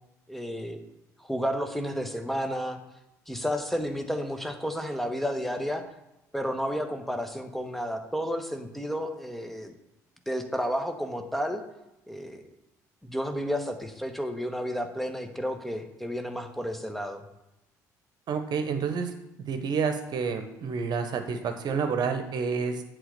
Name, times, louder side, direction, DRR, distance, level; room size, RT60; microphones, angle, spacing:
voice 1, 0.3-0.8 1.2-2.8 3.3-5.8 6.3-9.7 10.3-11.6 12.1-12.4 13.0-17.2, equal, ahead, 6 dB, 1.2 m, -31 dB
voice 2, 18.3-19.1 19.5-22.8, right 5 dB, 50° right, 7 dB, 1.1 m, -29 dB
7.8 x 3.8 x 6.6 m, 0.90 s
figure-of-eight pair, 50°, 9 cm